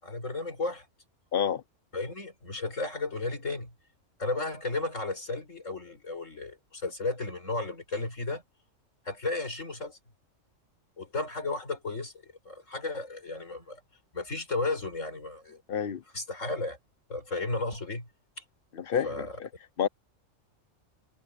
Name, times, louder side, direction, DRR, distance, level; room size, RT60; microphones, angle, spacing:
voice 1, 0.0-0.9 1.9-3.7 4.2-8.4 9.0-10.0 11.0-13.8 14.1-15.6 16.1-16.8 17.1-18.1 18.4-18.5 19.0-19.3, left 3 dB, 70° left, 4.8 m, -34 dB
voice 2, 1.3-1.6 15.7-16.0 18.7-19.5 19.8-19.9, left 8 dB, 50° left, 0.9 m, -29 dB
omnidirectional pair, 1.3 m